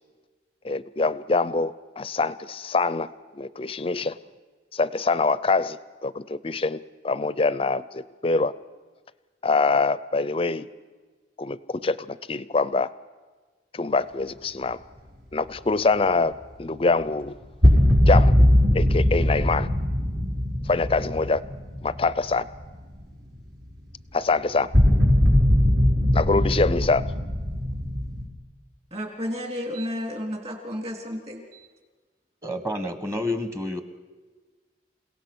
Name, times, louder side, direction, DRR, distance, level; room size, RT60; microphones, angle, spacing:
voice 1, 0.6-3.1 3.3-4.2 4.7-8.5 9.4-10.7 11.4-12.9 13.7-14.8 15.3-17.4 18.1-18.3 18.7-19.7 20.7-21.4 21.8-22.5 24.1-24.7 26.1-27.1, left 3 dB, 30° left, 17 dB, 0.6 m, -24 dB
sound 1, 17.6-22.7 23.0-23.1 24.7-28.2, left 1 dB, 70° right, 5.2 m, -20 dB
voice 2, 28.9-31.7, equal, 35° right, 2 dB, 3.5 m, -32 dB
voice 3, 32.4-33.8, left 1 dB, 15° right, 9 dB, 1.2 m, -29 dB
29.0 x 17.5 x 6.2 m, 1.4 s
head